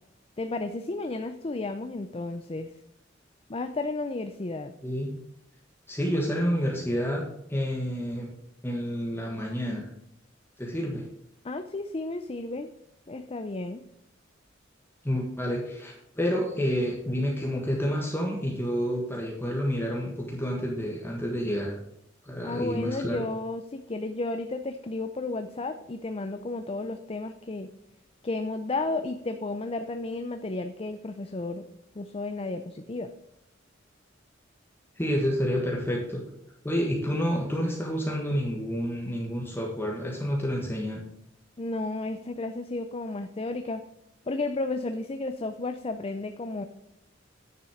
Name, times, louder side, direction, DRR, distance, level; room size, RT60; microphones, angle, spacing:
voice 1, 0.4-2.7 3.5-4.7 11.4-12.7 13.1-13.8 22.4-27.7 28.2-31.6 31.9-33.1 41.6-43.8 44.3-46.6, left 2 dB, 30° left, 8 dB, 0.6 m, -33 dB
voice 2, 5.9-7.2 7.5-8.3 8.6-9.9 10.6-11.1 15.0-21.8 22.2-23.2 35.0-36.2 36.6-41.0, equal, 10° left, -1 dB, 1.4 m, -29 dB
9.7 x 7.4 x 4.9 m, 0.80 s
head